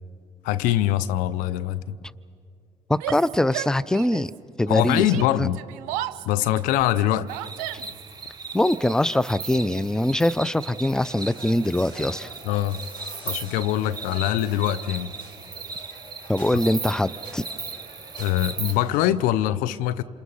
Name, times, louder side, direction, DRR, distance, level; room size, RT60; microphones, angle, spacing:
voice 1, 0.4-2.0 4.7-5.6 6.2-7.3 12.4-12.8 13.3-15.1 18.2-20.0, left 13 dB, 80° left, 15 dB, 0.6 m, -23 dB
voice 2, 2.9-4.3 4.6-5.5 8.5-12.3 16.3-17.4, left 1 dB, 5° left, 18 dB, 0.6 m, -23 dB
Yell, 2.9-4.4 4.6-8.1, right 15 dB, 80° right, 0.6 m, -35 dB
sound 1, 7.3-18.7, right 4 dB, 30° right, 2.2 m, -37 dB
sound 2, 10.9-19.1, equal, 30° left, 7.1 m, -46 dB
27.5 x 27.5 x 5.6 m, 2.4 s
hypercardioid pair, 60°, 14 cm